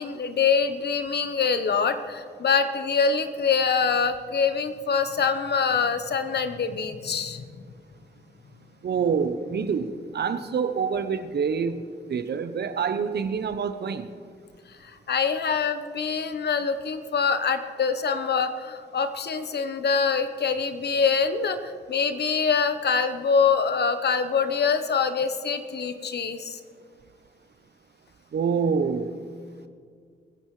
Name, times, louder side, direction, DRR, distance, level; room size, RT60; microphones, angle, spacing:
voice 1, 0.0-7.5 14.8-26.6, left 5 dB, 65° left, 1.1 m, -25 dB
voice 2, 8.8-14.1 28.3-29.2, right 6 dB, 65° right, 0.9 m, -26 dB
24.5 x 14.5 x 3.3 m
supercardioid pair, 50°, 18 cm